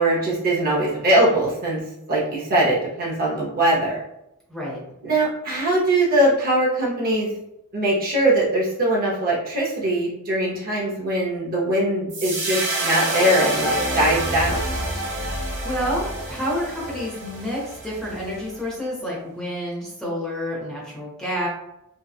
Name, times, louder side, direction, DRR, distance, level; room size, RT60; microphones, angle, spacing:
voice 1, 0.0-1.8 2.1-4.0 5.0-7.3 7.7-14.6, right 1 dB, 40° right, -4 dB, 0.6 m, -21 dB
voice 2, 4.5-4.8 15.6-21.5, equal, 5° left, -7 dB, 0.7 m, -29 dB
sound 1, 12.1-18.5, right 1 dB, 60° right, 1.1 m, -27 dB
2.7 x 2.2 x 2.3 m, 0.85 s
head